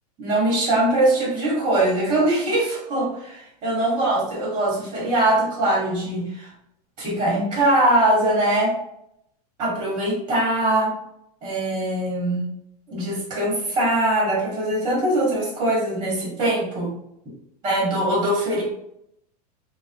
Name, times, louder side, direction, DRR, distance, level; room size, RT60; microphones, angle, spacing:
voice 1, 0.2-6.5 7.0-8.7 9.6-10.9 11.4-12.4 12.9-16.9 17.6-18.6, right 1 dB, 20° right, -5 dB, 1.0 m, -22 dB
2.5 x 2.0 x 2.6 m, 0.77 s
supercardioid pair, 140°, 20 cm